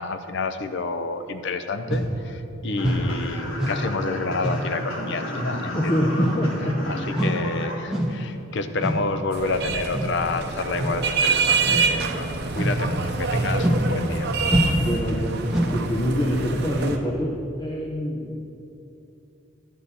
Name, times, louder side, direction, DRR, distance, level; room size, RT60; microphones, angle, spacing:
voice 1, 0.0-6.0 6.9-14.3, left 3 dB, 60° left, 9 dB, 0.6 m, -29 dB
sound 1, 1.9-2.1 2.8-3.1 3.6-3.8 4.4-4.7 5.3-5.5 6.2-6.5 7.1-7.4 7.9-8.2 8.8-9.1 9.9-10.2 10.7-11.0 11.6-12.0 12.6-12.9 13.6-13.9 14.5-14.9 15.5-15.8, equal, 5° right, 1.4 m, -25 dB
sound 2, 2.8-7.7, left 1 dB, 85° left, 1.9 m, -34 dB
voice 2, 5.7-7.0 14.8-18.5, equal, 20° left, -1 dB, 0.8 m, -25 dB
sound 3, 9.3-17.0, right 4 dB, 55° right, 0.8 m, -26 dB
11.0 x 9.9 x 4.2 m, 2.9 s
head